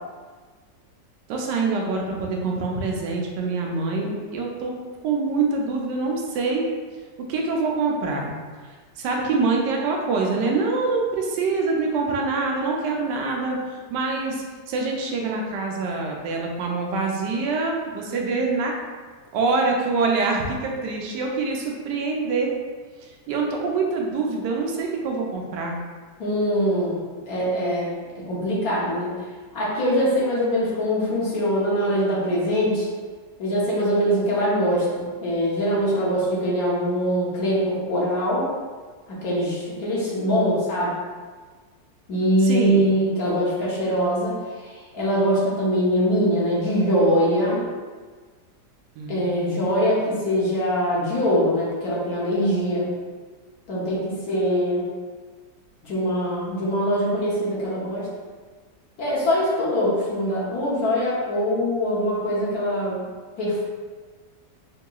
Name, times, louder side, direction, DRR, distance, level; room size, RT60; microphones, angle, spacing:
voice 1, 1.3-4.7 5.0-6.7 7.3-8.4 8.6-18.7 19.3-22.5 23.0-25.8 42.4-42.9 49.0-49.6, right 3 dB, 85° right, 0 dB, 1.3 m, -25 dB
voice 2, 26.2-27.9 28.2-29.1 29.5-32.9 33.4-38.5 39.1-40.9 42.1-47.7 49.1-52.9 53.7-54.9 55.8-58.1 59.0-63.0 63.4-63.6, equal, 60° left, -6 dB, 1.3 m, -23 dB
4.6 x 2.8 x 2.3 m, 1.5 s
omnidirectional pair, 1.8 m